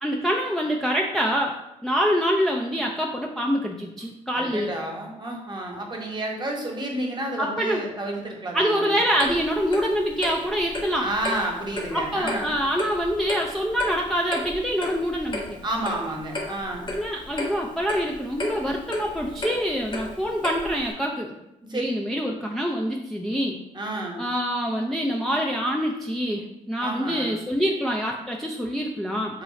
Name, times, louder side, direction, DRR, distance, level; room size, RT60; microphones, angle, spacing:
voice 1, 0.0-1.6 1.8-4.7 7.4-7.8 8.5-11.1 11.9-15.6 16.9-21.3 21.7-23.6 24.2-29.4, equal, ahead, -1 dB, 0.4 m, -25 dB
voice 2, 4.3-9.0 11.0-12.6 15.6-16.9 21.7-21.8 23.7-24.2 26.8-27.3 29.3-29.4, right 1 dB, 30° right, 0 dB, 1.0 m, -30 dB
Clock, 9.2-20.9, left 2 dB, 35° left, 0.9 m, -34 dB
3.0 x 2.3 x 4.0 m, 0.90 s
supercardioid pair, 55°, 15 cm